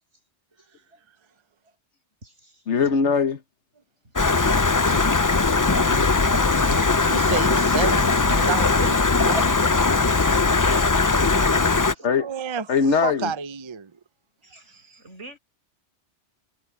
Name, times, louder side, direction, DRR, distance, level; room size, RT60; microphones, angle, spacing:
voice 1, 0.6-1.0 2.2-2.9 4.0-4.2 4.5-7.1 11.8-12.2 14.4-15.4, right 1 dB, 80° right, 6.3 m, -43 dB
voice 2, 2.7-3.4 12.0-12.2 12.7-13.3, left 5 dB, 75° left, 1.5 m, -20 dB
Stream, 4.2-11.9, left 3 dB, 25° left, 0.4 m, -20 dB
voice 3, 7.0-9.4 12.0-14.0, right 6 dB, 30° right, 0.6 m, -31 dB
omnidirectional pair, 1.2 m